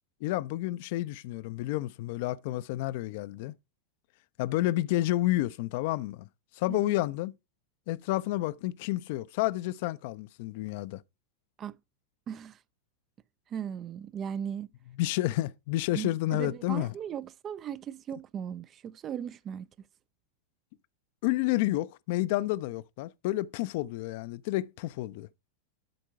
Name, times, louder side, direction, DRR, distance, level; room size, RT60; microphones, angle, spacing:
voice 1, 0.2-3.5 4.4-6.3 6.5-7.3 7.9-11.0 15.0-16.9 21.2-25.3, left 17 dB, 50° left, 0.4 m, -30 dB
voice 2, 12.3-12.6 13.5-14.7 15.9-19.7, right 8 dB, 30° right, 0.4 m, -37 dB
12.0 x 4.4 x 4.7 m
figure-of-eight pair, 90°, 0 cm